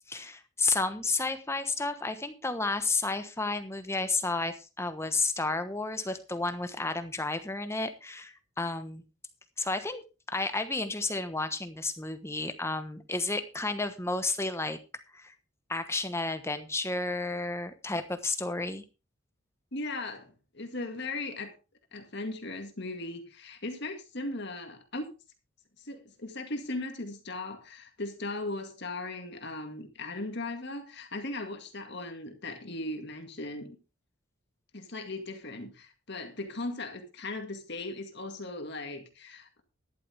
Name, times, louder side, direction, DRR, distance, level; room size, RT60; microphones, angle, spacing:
voice 1, 0.1-9.0 9.6-10.0 10.3-14.8 15.1-15.3 15.7-18.8, left 3 dB, 10° left, 1.2 m, -32 dB
voice 2, 19.7-21.5 21.9-25.1 25.8-33.8 34.7-39.6, left 2 dB, 55° left, 2.1 m, -38 dB
13.0 x 11.5 x 3.5 m
head